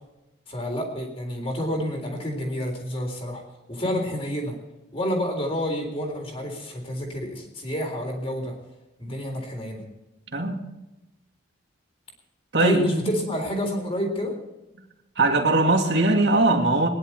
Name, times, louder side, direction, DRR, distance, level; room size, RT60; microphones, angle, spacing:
voice 1, 0.5-3.4 3.7-4.6 4.9-8.5 9.0-9.8 12.6-14.3, equal, 30° left, 2 dB, 3.8 m, -29 dB
voice 2, 10.3-10.7 12.5-12.8 15.2-16.9, right 2 dB, 60° right, 1 dB, 2.5 m, -20 dB
20.5 x 11.0 x 4.6 m, 0.97 s
head